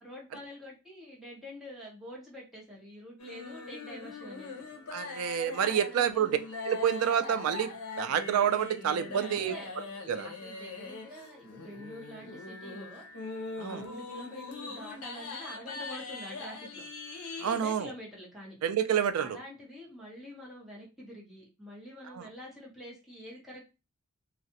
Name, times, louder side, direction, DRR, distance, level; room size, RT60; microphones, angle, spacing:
voice 1, 0.0-4.5 5.6-6.3 9.1-9.7 10.2-13.3 13.6-16.8 17.4-18.6 19.2-23.6, equal, ahead, -6 dB, 0.9 m, -46 dB
sound 1, 3.2-17.6, left 3 dB, 85° left, 0.6 m, -42 dB
voice 2, 4.9-6.3 6.6-7.7 8.0-9.5 10.1-10.3 13.6-13.8 17.4-17.9 18.6-19.4 22.2-22.3, right 8 dB, 75° right, 11 dB, 0.3 m, -28 dB
2.3 x 2.0 x 2.7 m, 0.28 s
head